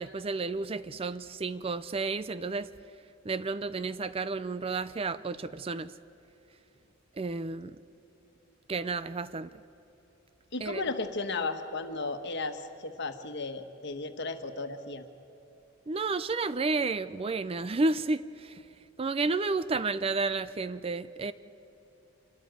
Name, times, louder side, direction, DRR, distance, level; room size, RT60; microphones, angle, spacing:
voice 1, 0.0-2.7 3.3-5.9 7.2-7.8 8.7-9.5 10.6-10.8 15.9-18.6 19.0-21.3, right 3 dB, 25° right, 14 dB, 0.4 m, -31 dB
voice 2, 10.5-15.0, left 3 dB, 55° left, 7 dB, 1.4 m, -34 dB
27.0 x 13.0 x 9.2 m, 2.9 s
head